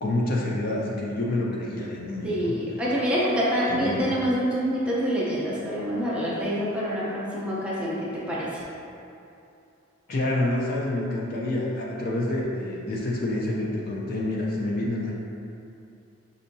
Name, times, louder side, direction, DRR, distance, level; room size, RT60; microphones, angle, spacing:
voice 1, 0.0-2.6 3.7-4.1 10.1-15.1, left 1 dB, 45° left, -3 dB, 0.4 m, -27 dB
voice 2, 2.2-8.6, equal, 5° right, -8 dB, 0.6 m, -26 dB
5.3 x 2.7 x 2.6 m, 2.6 s
head